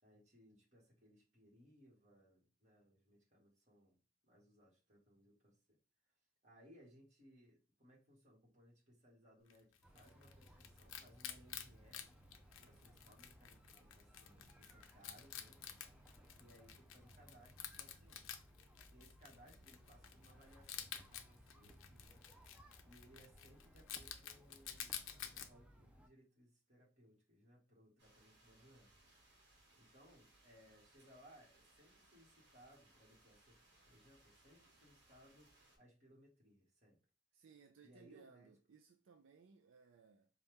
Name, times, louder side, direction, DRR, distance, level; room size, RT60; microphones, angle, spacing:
voice 1, 0.0-5.8 6.4-12.0 12.6-15.6 16.3-18.3 18.9-22.3 22.8-29.0 29.8-37.0 37.8-38.5, equal, 35° right, 1.7 m, -66 dB
Wild animals, 9.5-25.5, left 10 dB, 90° left, 0.5 m, -52 dB
sound 1, 9.8-26.1, equal, 5° right, 0.5 m, -63 dB
sound 2, 28.0-35.8, right 2 dB, 55° right, 1.3 m, -69 dB
voice 2, 37.3-40.3, right 6 dB, 75° right, 0.4 m, -64 dB
4.1 x 2.4 x 3.5 m
head